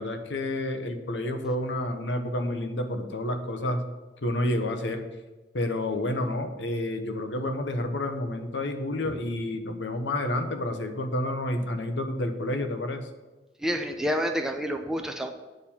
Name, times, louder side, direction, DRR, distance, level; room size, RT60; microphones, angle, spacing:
voice 1, 0.0-3.8 4.2-5.0 5.5-13.0, left 1 dB, 85° left, 6 dB, 1.0 m, -29 dB
voice 2, 13.6-15.3, equal, 5° right, 4 dB, 0.7 m, -29 dB
9.1 x 4.4 x 7.1 m, 1.2 s
head